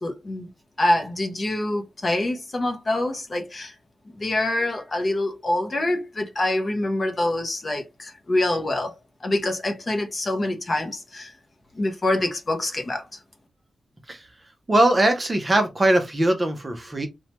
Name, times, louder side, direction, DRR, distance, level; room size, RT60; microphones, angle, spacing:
voice 1, 0.0-0.5 0.8-3.8 4.1-8.9 9.2-11.3 11.7-13.0, left 1 dB, 30° left, 0.6 m, -25 dB
voice 2, 14.7-17.1, right 1 dB, 20° right, 0.6 m, -21 dB
3.1 x 2.2 x 2.9 m
wide cardioid pair, 175°, 0 cm